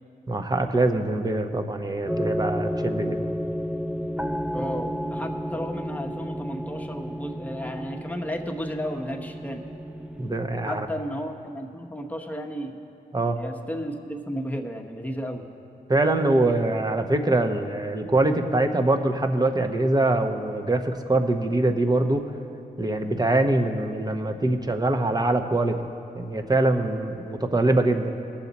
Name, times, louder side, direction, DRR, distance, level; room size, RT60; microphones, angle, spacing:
voice 1, 0.3-3.2 10.2-10.9 13.1-13.4 15.9-22.2 22.8-25.8 26.1-28.1, right 2 dB, 25° right, 6 dB, 0.9 m, -23 dB
sound 1, 2.1-10.3, equal, 5° right, 0.5 m, -31 dB
voice 2, 4.5-9.6 10.6-12.8 13.3-15.4, equal, 10° left, 2 dB, 1.1 m, -33 dB
18.5 x 7.2 x 4.1 m, 2.8 s
cardioid pair, 65°, 16 cm